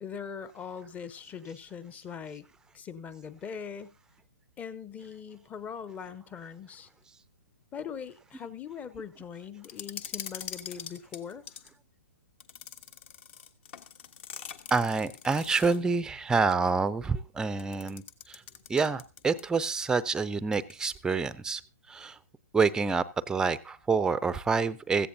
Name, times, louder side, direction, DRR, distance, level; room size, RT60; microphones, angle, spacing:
voice 1, 0.0-2.4 2.7-3.9 4.6-6.9 7.7-11.4, left 7 dB, 15° left, 0.9 m, -41 dB
sound 1, 9.6-11.7 12.4-15.9 17.6-19.6 19.9-20.0 20.5-21.0, left 8 dB, 40° left, 1.3 m, -44 dB
voice 2, 14.7-18.4 18.7-21.6 21.9-22.2 22.5-25.1, right 4 dB, 5° right, 0.6 m, -27 dB
16.5 x 15.0 x 2.7 m
figure-of-eight pair, 125°, 9 cm